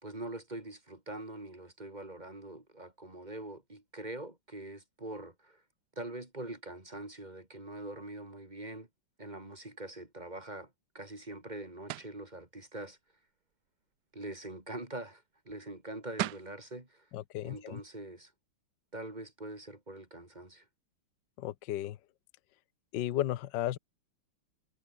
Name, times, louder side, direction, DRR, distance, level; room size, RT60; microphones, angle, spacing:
voice 1, 0.0-5.6 6.0-8.9 9.2-13.0 14.1-17.1 17.4-18.3 18.9-20.6, right 1 dB, 20° right, 4.0 m, -43 dB
sound 1, 11.9-12.2 15.8-15.9 16.2-16.5, right 15 dB, 85° right, 0.9 m, -35 dB
voice 2, 17.1-17.8 21.4-22.0 22.9-23.8, left 13 dB, 65° left, 1.4 m, -34 dB
omnidirectional pair, 2.4 m